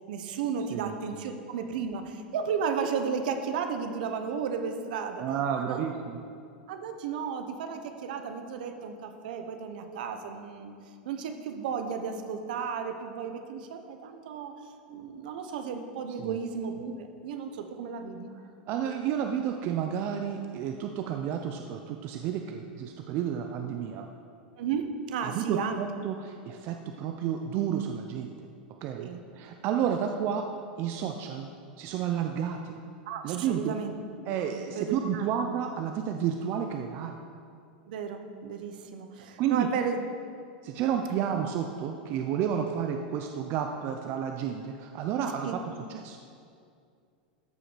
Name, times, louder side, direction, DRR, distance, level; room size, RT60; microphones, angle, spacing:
voice 1, 0.1-5.2 5.6-5.9 6.7-10.7 11.0-14.6 14.9-18.3 24.6-25.8 28.9-29.2 33.1-33.9 34.5-35.3 37.9-40.0 41.1-41.2 45.4-45.6, right 6 dB, 70° right, 7 dB, 0.9 m, -34 dB
voice 2, 5.2-6.2 16.2-16.4 18.7-24.1 25.2-28.3 28.8-29.1 29.4-30.5 30.8-31.5 31.8-32.7 33.2-33.7 34.3-37.2 39.4-39.7 40.6-45.6 45.9-46.2, right 8 dB, 50° right, 4 dB, 0.6 m, -31 dB
13.5 x 5.0 x 5.0 m, 2.4 s
hypercardioid pair, 105°, 5 cm